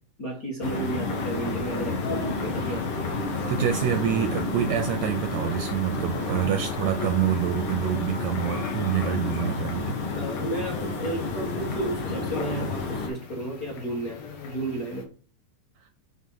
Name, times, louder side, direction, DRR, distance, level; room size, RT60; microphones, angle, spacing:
voice 1, 0.2-3.1 10.1-15.0, right 1 dB, 40° left, -3 dB, 1.2 m, -33 dB
sound 1, 0.6-13.1, left 3 dB, 85° left, 0.9 m, -31 dB
sound 2, 1.1-15.1, left 5 dB, 60° left, 1.9 m, -40 dB
voice 2, 3.5-10.0 15.8-15.9, right 10 dB, 80° right, 7 dB, 1.6 m, -27 dB
6.3 x 3.9 x 5.5 m, 0.40 s
omnidirectional pair, 3.7 m